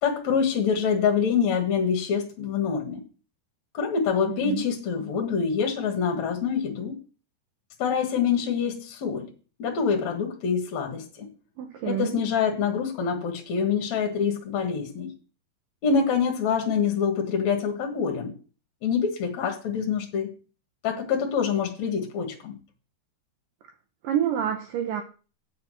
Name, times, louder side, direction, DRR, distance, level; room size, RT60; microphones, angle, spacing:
voice 1, 0.0-3.0 3.7-7.0 7.8-9.3 9.6-11.3 11.8-15.1 15.8-18.3 18.8-20.3 20.8-22.6, left 6 dB, 55° left, 2.1 m, -25 dB
voice 2, 4.3-4.6 11.6-12.2 24.0-25.0, right 10 dB, 80° right, 2.0 m, -28 dB
8.4 x 5.6 x 7.8 m
omnidirectional pair, 5.1 m